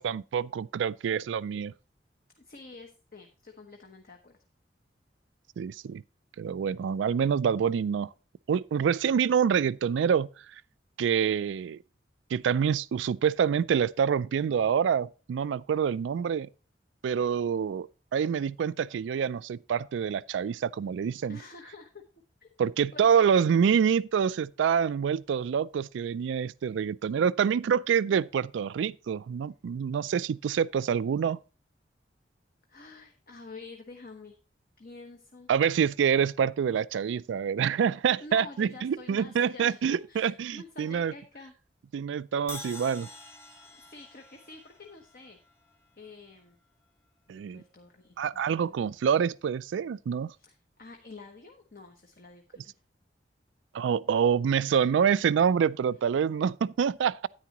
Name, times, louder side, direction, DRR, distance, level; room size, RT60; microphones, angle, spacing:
voice 1, 0.0-1.7 5.6-6.0 6.4-8.1 8.5-10.3 11.0-11.8 12.3-16.5 17.0-21.4 22.6-31.4 35.5-41.1 41.9-43.1 47.3-47.6 48.2-50.3 53.7-57.3, right 7 dB, 90° right, 0.3 m, -26 dB
voice 2, 2.4-4.4 21.3-22.0 22.4-22.5 22.9-23.3 32.7-34.4 34.8-35.5 38.2-41.5 43.7-45.4 46.0-46.6 47.3-48.9 50.4-52.7, left 3 dB, 50° left, 1.0 m, -48 dB
Crash cymbal, 42.5-46.5, left 2 dB, 15° left, 1.2 m, -47 dB
9.7 x 9.3 x 2.9 m
head